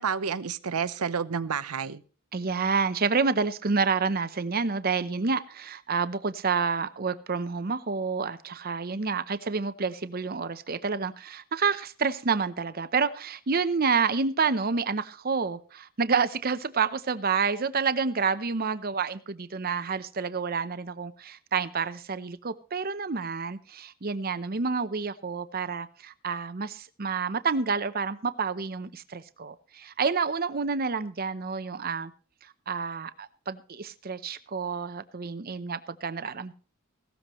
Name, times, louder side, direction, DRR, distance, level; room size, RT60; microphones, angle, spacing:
voice 1, 0.0-2.0, right 6 dB, 85° right, 15 dB, 0.7 m, -30 dB
voice 2, 2.3-32.1 32.7-36.5, right 5 dB, 45° right, 13 dB, 0.7 m, -29 dB
16.5 x 13.0 x 3.1 m, 0.39 s
head